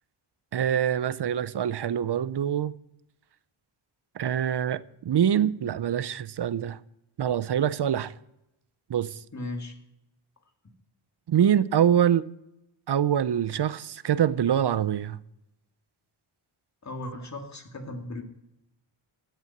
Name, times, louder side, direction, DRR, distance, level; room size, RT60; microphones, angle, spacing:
voice 1, 0.5-2.7 4.2-6.8 7.2-8.1 8.9-9.2 11.3-12.3 12.9-15.2, right 9 dB, 55° right, 0.6 m, -25 dB
voice 2, 9.3-9.7 16.8-18.2, left 1 dB, 35° left, 2.1 m, -36 dB
16.0 x 7.0 x 7.3 m
wide cardioid pair, 105°, 49 cm